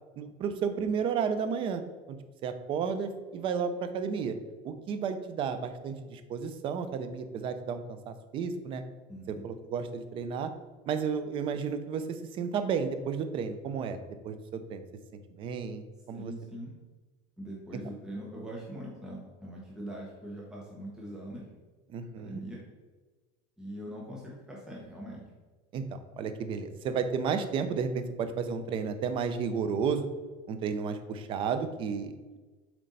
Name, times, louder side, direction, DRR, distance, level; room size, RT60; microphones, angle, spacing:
voice 1, 0.2-1.8 2.4-4.4 4.6-8.8 9.3-10.5 10.9-12.0 12.4-14.0 14.2-14.8 15.4-15.8 16.1-16.3 21.9-22.4 25.7-25.8 26.2-30.1 30.5-32.4, right 6 dB, 35° right, 9 dB, 0.6 m, -32 dB
voice 2, 9.1-9.5 16.1-16.7 17.4-21.4 22.1-22.6 23.6-25.2, right 1 dB, 5° right, -4 dB, 1.1 m, -42 dB
7.7 x 4.4 x 4.0 m, 1.3 s
supercardioid pair, 150°, 15 cm